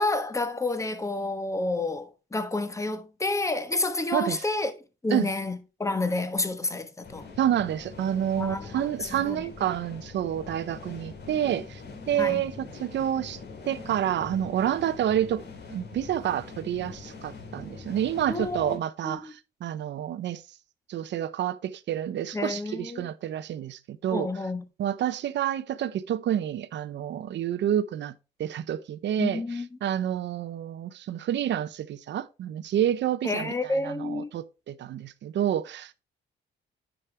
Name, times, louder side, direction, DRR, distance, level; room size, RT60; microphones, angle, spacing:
voice 1, 0.0-4.7 5.0-7.3 8.4-8.7 9.2-9.4 12.2-12.4 18.3-18.8 19.0-19.3 22.3-23.1 24.1-24.6 29.2-29.7 33.2-34.3, left 2 dB, 15° left, 1.1 m, -29 dB
voice 2, 4.1-4.4 5.1-5.3 7.4-11.8 12.1-13.4 13.6-15.4 15.7-20.4 20.9-24.3 24.8-28.1 28.4-36.0, right 10 dB, 65° right, 0.7 m, -29 dB
sound 1, 7.0-18.8, left 4 dB, 60° left, 2.3 m, -43 dB
10.0 x 5.1 x 3.3 m
cardioid pair, 90°, 20 cm